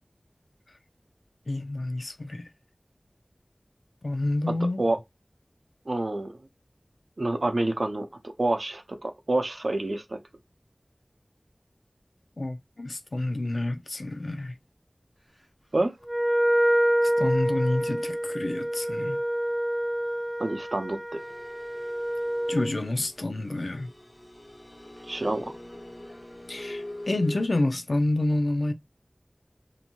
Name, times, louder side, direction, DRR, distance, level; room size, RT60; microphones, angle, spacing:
voice 1, 1.5-2.5 4.0-4.8 12.4-14.6 17.0-19.2 22.5-23.9 26.5-28.7, left 2 dB, 85° left, 0.4 m, -28 dB
voice 2, 5.9-6.3 7.2-10.2 15.7-15.9 20.4-21.2 25.1-25.5, right 2 dB, 80° right, 0.5 m, -28 dB
Wind instrument woodwind instrument, 16.1-22.7, equal, 10° right, 0.5 m, -27 dB
sound 1, 21.2-27.5, left 1 dB, 35° left, 0.6 m, -43 dB
2.9 x 2.6 x 2.2 m
wide cardioid pair, 45°, 0 cm